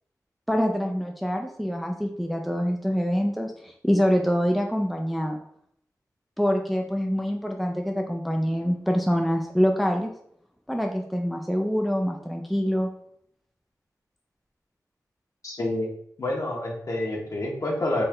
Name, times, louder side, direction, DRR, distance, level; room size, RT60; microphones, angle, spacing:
voice 1, 0.5-5.4 6.4-10.1 10.7-12.9, equal, ahead, 2 dB, 0.5 m, -25 dB
voice 2, 15.4-15.9 16.2-18.0, left 1 dB, 55° left, -2 dB, 1.4 m, -28 dB
4.3 x 3.3 x 3.8 m, 0.70 s
wide cardioid pair, 95°, 6 cm